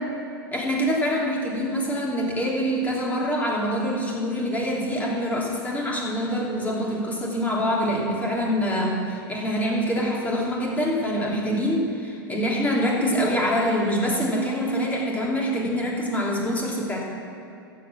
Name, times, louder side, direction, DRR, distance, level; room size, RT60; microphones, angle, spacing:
voice 1, 0.5-17.0, equal, 15° left, -3 dB, 2.9 m, -25 dB
14.0 x 8.0 x 6.2 m, 2.7 s
hypercardioid pair, 100°, 12 cm